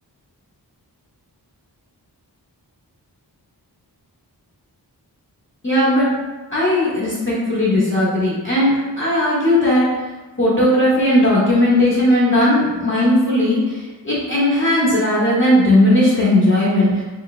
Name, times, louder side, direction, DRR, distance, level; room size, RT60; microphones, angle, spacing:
voice 1, 5.6-6.1 6.5-9.9 10.4-17.0, left 1 dB, 30° left, -8 dB, 0.8 m, -17 dB
3.1 x 2.0 x 2.2 m, 1.2 s
wide cardioid pair, 70°, 41 cm